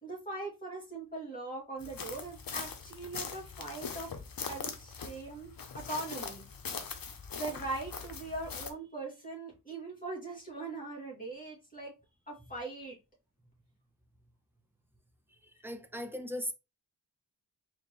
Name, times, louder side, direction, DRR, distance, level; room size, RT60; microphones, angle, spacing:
voice 1, 0.0-4.1 4.5-6.5 7.3-11.9 12.3-13.0, right 2 dB, 20° left, 2.2 m, -41 dB
sound 1, 1.8-8.7, left 5 dB, 55° left, 0.7 m, -41 dB
voice 2, 15.6-16.5, equal, 5° right, 0.5 m, -37 dB
4.3 x 2.9 x 3.0 m
wide cardioid pair, 130°, 43 cm